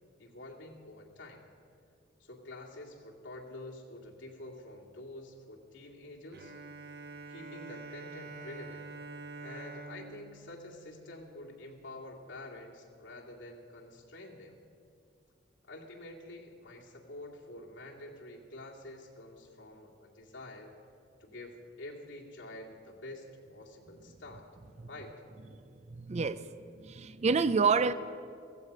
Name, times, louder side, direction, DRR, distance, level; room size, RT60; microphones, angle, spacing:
voice 1, 0.2-1.4 2.2-6.5 7.3-8.9 9.4-14.6 15.6-20.7 21.2-24.5 24.9-25.1, left 2 dB, 90° left, 2.3 m, -48 dB
Bowed string instrument, 6.3-11.8, right 3 dB, 55° right, 0.9 m, -47 dB
voice 2, 25.5-26.5 26.8-27.9, right 4 dB, 35° right, 0.5 m, -29 dB
15.5 x 15.5 x 5.4 m
head